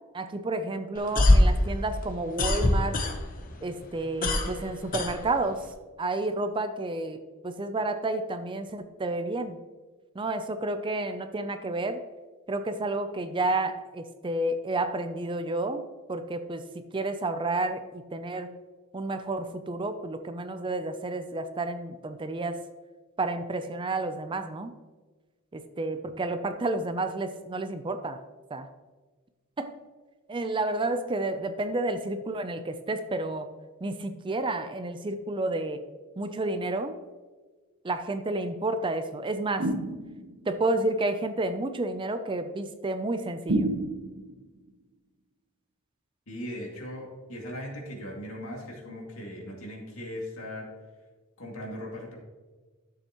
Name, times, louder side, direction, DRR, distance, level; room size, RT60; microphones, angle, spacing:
voice 1, 0.1-3.0 3.6-5.6 6.0-7.2 7.4-9.6 10.2-12.0 12.5-16.6 16.9-18.6 18.9-22.6 23.2-24.7 25.5-28.2 28.5-28.7 29.6-29.8 30.3-33.5 33.8-35.8 36.2-36.9 37.8-39.7 40.5-43.7, right 2 dB, 25° right, 9 dB, 0.4 m, -30 dB
sound 1, 0.9-3.5 3.8-5.7, left 1 dB, 40° left, 0.9 m, -23 dB
sound 2, 39.6-40.5 43.5-44.4, right 1 dB, 60° right, 1.0 m, -29 dB
voice 2, 46.3-50.7 51.4-52.2, equal, 70° left, -1 dB, 2.3 m, -38 dB
12.0 x 7.1 x 3.0 m, 1.3 s
head